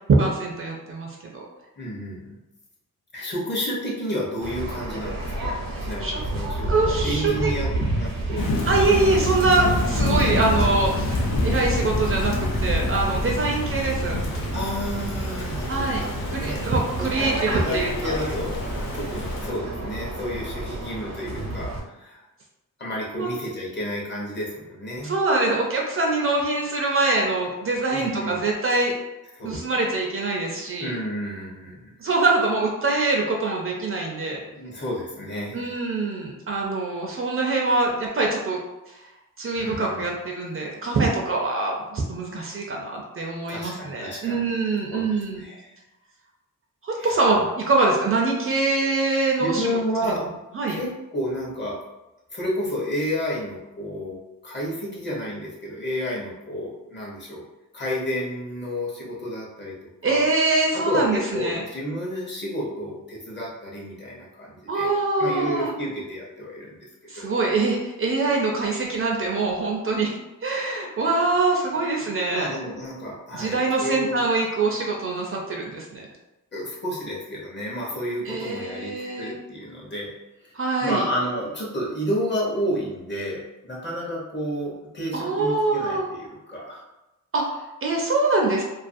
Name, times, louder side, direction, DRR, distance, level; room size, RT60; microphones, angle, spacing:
voice 1, 0.1-1.5 6.0-6.2 6.7-7.5 8.7-14.2 15.7-16.0 16.3-18.1 23.2-23.3 25.0-28.9 29.4-30.9 32.0-34.4 35.5-38.6 38.9-39.0 39.4-45.4 46.8-50.1 50.5-50.8 60.0-61.6 64.7-65.7 67.1-72.5 73.3-76.1 78.3-79.4 80.5-81.0 85.1-86.1 87.3-88.6, right 3 dB, 40° right, -1 dB, 0.4 m, -24 dB
voice 2, 1.8-2.4 3.1-7.7 7.9-8.5 14.5-16.6 17.0-18.6 18.9-22.3 22.8-25.1 27.9-28.5 29.3-29.7 30.8-31.9 34.5-35.7 39.6-40.1 43.5-44.5 44.9-45.7 47.0-47.3 49.4-50.3 50.7-51.8 52.3-57.4 57.7-59.7 60.0-60.2 60.7-66.9 67.1-67.3 71.9-74.2 76.5-80.1 80.4-80.5 80.8-86.9, equal, 30° left, -4 dB, 0.7 m, -31 dB
Waves surf, 4.4-21.8, right 2 dB, 85° right, 0.8 m, -30 dB
Thunder / Rain, 8.4-19.5, left 2 dB, 80° left, 0.6 m, -28 dB
2.4 x 2.3 x 2.5 m, 0.99 s
wide cardioid pair, 130°, 34 cm